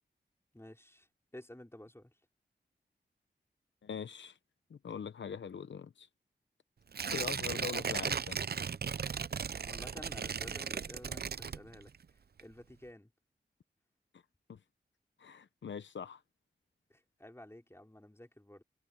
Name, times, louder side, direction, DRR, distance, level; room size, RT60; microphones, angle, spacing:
voice 1, 0.5-1.1 1.3-2.2 9.6-13.1 16.9-18.6, left 1 dB, 15° left, 4.4 m, -52 dB
voice 2, 3.8-4.4 4.7-6.1 7.1-8.4 14.5-14.6 15.2-16.2, left 6 dB, 90° left, 0.9 m, -42 dB
Tearing, 6.9-12.0 12.4-12.5, right 6 dB, 60° right, 0.6 m, -36 dB
cardioid pair, 40°, 18 cm